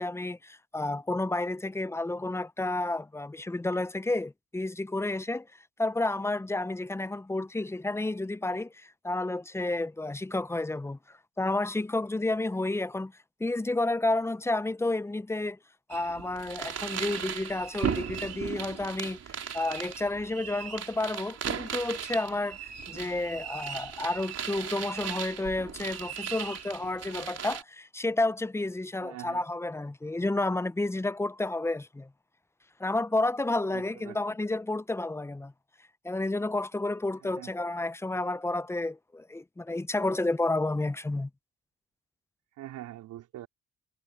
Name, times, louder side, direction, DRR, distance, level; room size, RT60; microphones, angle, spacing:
voice 1, 0.0-5.5 5.8-11.0 11.4-13.1 13.4-15.6 15.9-19.2 19.5-32.1 32.8-35.5 36.0-41.3, left 2 dB, 10° left, 0.5 m, -31 dB
sound 1, 15.9-27.6, right 8 dB, 55° right, 4.2 m, -37 dB
voice 2, 29.0-29.4 33.7-34.2 37.2-37.5 42.6-43.5, right 14 dB, 85° right, 4.3 m, -43 dB
cardioid pair, 90°, 30 cm